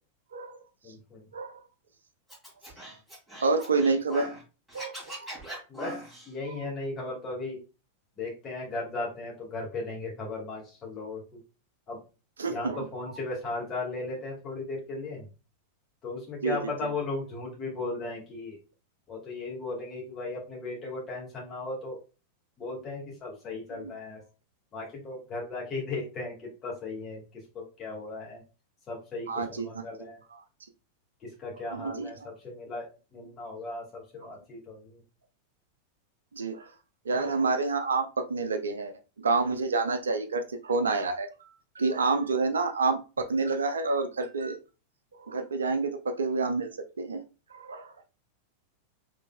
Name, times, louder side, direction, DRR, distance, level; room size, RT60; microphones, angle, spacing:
voice 1, 0.8-1.3 5.7-6.0 6.3-7.6 8.2-11.4 11.9-12.0 12.5-15.3 16.0-18.6 19.1-22.0 22.6-24.2 24.7-28.4 28.9-30.2 31.2-35.0, left 3 dB, 25° left, -3 dB, 1.9 m, -36 dB
Scratching (performance technique), 2.3-4.4 4.7-6.3, right 1 dB, 5° right, 2.1 m, -40 dB
voice 2, 3.4-4.3 4.7-5.3 12.4-12.8 16.4-16.6 23.8-23.9 29.3-29.7 30.3-30.4 31.7-32.1 36.3-36.7 37.1-41.3 41.8-44.6 45.2-45.9 46.2-46.7 47.0-47.2 47.5-47.9, right 4 dB, 70° right, 7 dB, 0.4 m, -28 dB
3.9 x 3.2 x 2.3 m, 0.32 s
figure-of-eight pair, 90°, 0 cm